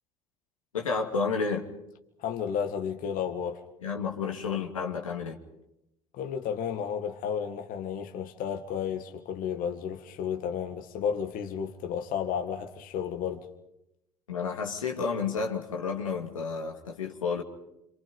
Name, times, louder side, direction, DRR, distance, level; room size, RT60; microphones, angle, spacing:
voice 1, 0.7-1.7 3.8-5.4 14.3-17.4, left 5 dB, 90° left, 2.6 m, -31 dB
voice 2, 2.2-3.6 6.1-13.5, left 7 dB, 55° left, 2.0 m, -32 dB
27.5 x 27.0 x 5.4 m
hypercardioid pair, 65°, 17 cm